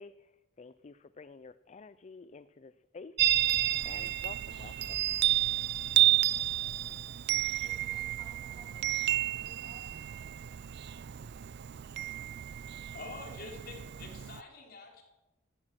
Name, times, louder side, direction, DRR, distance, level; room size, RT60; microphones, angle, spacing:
voice 1, 0.0-5.1, left 4 dB, 35° left, 14 dB, 0.4 m, -51 dB
Chime, 3.2-14.4, right 13 dB, 60° right, 0.4 m, -31 dB
voice 2, 7.6-10.1, equal, 20° left, -1 dB, 3.9 m, -58 dB
voice 3, 12.9-15.0, left 3 dB, 50° left, 1 dB, 3.4 m, -46 dB
15.0 x 12.5 x 6.0 m, 1.1 s
head